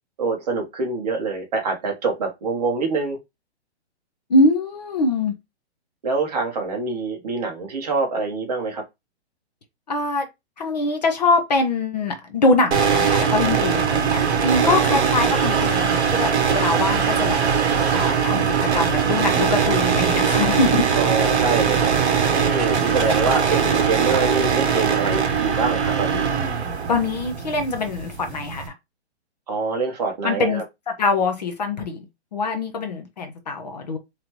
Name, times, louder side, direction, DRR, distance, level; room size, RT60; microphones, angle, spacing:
voice 1, 0.2-3.2 6.0-8.8 14.6-15.0 20.9-21.9 22.3-26.2 29.5-30.6, right 4 dB, 35° right, 1.1 m, -25 dB
voice 2, 4.3-5.3 9.9-10.3 10.6-20.8 26.9-28.6 30.2-32.0 32.3-34.0, left 3 dB, 35° left, 0.8 m, -23 dB
sound 1, 12.7-28.7, right 7 dB, 65° right, 1.1 m, -21 dB
4.0 x 3.2 x 2.9 m
hypercardioid pair, 180°, 34 cm